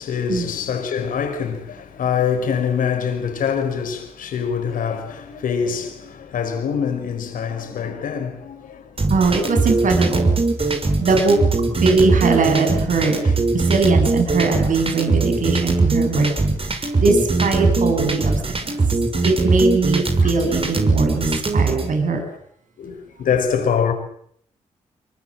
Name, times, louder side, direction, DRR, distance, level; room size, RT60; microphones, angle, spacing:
voice 1, 0.0-9.0 10.9-11.1 13.2-13.3 19.2-19.3 20.2-20.3 21.7-22.1 22.8-23.9, left 7 dB, 75° left, 5.1 m, -25 dB
sound 1, 9.0-21.9, right 3 dB, 40° right, 6.1 m, -20 dB
voice 2, 9.1-10.3 11.0-11.4 11.8-13.2 13.5-16.3 16.8-18.3 18.7-18.8 19.2-22.2, right 4 dB, 70° right, 7.3 m, -20 dB
24.5 x 24.0 x 7.7 m
supercardioid pair, 45°, 14 cm